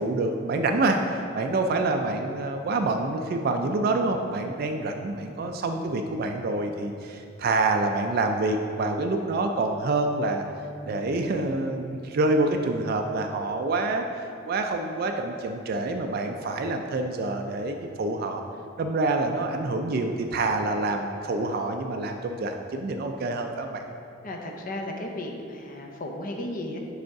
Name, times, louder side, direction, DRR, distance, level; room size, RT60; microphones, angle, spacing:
voice 1, 0.0-10.4 10.8-14.0 14.5-18.4 18.8-23.8, right 2 dB, 50° right, 4 dB, 0.3 m, -27 dB
voice 2, 24.2-26.8, left 1 dB, 45° left, 2 dB, 0.6 m, -34 dB
5.1 x 4.9 x 4.6 m, 2.9 s
head